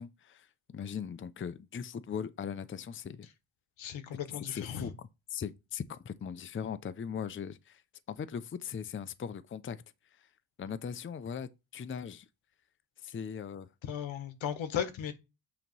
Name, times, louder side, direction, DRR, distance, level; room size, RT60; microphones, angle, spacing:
voice 1, 0.0-3.3 4.3-7.8 8.1-9.8 10.2-10.3 10.6-12.3 13.0-13.7, left 7 dB, 30° left, 0.5 m, -39 dB
voice 2, 3.8-4.9 13.8-15.1, left 8 dB, 85° left, 1.3 m, -36 dB
8.6 x 3.0 x 5.4 m
cardioid pair, 85°, 45 cm